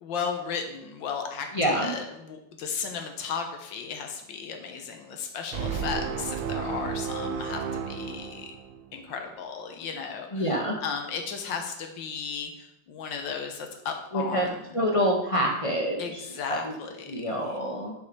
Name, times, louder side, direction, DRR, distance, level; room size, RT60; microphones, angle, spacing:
voice 1, 0.0-8.6 8.9-10.5 10.8-14.6 16.0-17.6, left 6 dB, 80° left, 4 dB, 1.7 m, -35 dB
voice 2, 1.5-1.9 10.3-10.8 14.1-14.5 14.7-16.7 17.0-17.9, equal, 45° left, 0 dB, 0.4 m, -27 dB
sound 1, 5.5-9.0, right 6 dB, 75° right, 1.3 m, -32 dB
7.0 x 5.4 x 4.7 m, 0.84 s
omnidirectional pair, 2.0 m